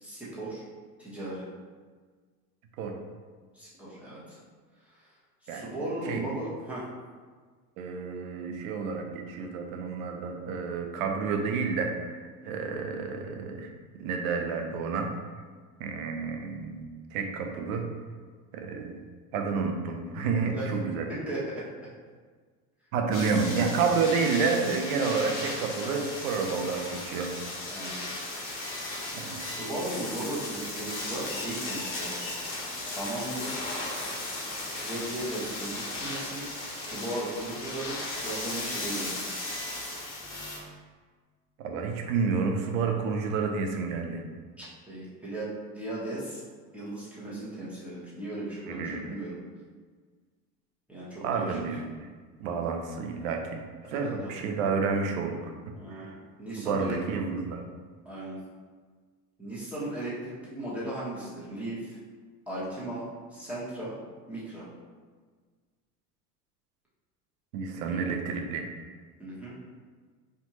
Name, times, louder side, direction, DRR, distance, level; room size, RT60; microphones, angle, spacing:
voice 1, 0.0-0.6 1.0-1.4 3.5-4.4 5.4-6.8 12.4-12.7 20.5-20.7 21.1-21.6 27.7-28.0 29.3-32.4 32.8-33.6 34.7-39.2 44.6-45.5 45.7-46.4 46.7-49.4 50.9-51.6 53.8-54.3 55.8-57.0 58.0-58.4 59.4-62.0 62.5-64.0 64.3-64.7 67.8-68.1 69.2-69.6, right 1 dB, 5° right, -9 dB, 1.3 m, -37 dB
voice 2, 7.8-12.2 12.4-13.7 14.0-15.1 15.8-17.9 18.5-19.0 19.3-21.1 22.9-27.3 29.1-29.4 41.6-44.2 48.7-49.1 51.2-51.8 52.4-53.6 53.9-55.4 55.9-56.2 56.6-57.6 67.5-68.6, right 5 dB, 60° right, 3 dB, 0.7 m, -30 dB
sound 1, 23.1-40.6, left 2 dB, 25° left, 1.2 m, -36 dB
4.3 x 2.6 x 2.9 m, 1.5 s
figure-of-eight pair, 75°, 47 cm